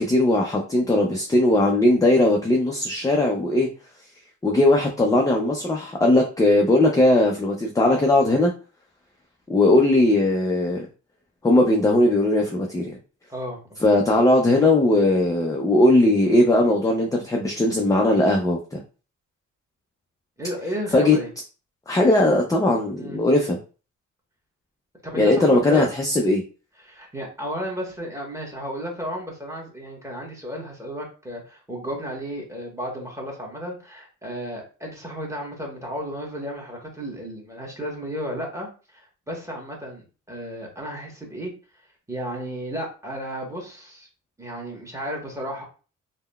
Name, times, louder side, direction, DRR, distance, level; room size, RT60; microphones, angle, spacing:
voice 1, 0.0-3.7 4.4-8.5 9.5-10.9 11.4-12.9 13.8-18.8 20.9-21.2 21.9-23.6 25.2-26.4, left 1 dB, 10° left, 0 dB, 0.4 m, -19 dB
voice 2, 13.3-13.8 20.4-21.3 23.0-23.2 25.0-25.9 26.8-41.5 42.1-44.1 44.4-45.6, equal, 10° right, -2 dB, 1.1 m, -33 dB
3.6 x 2.1 x 2.2 m, 0.35 s
cardioid pair, 95°, 32 cm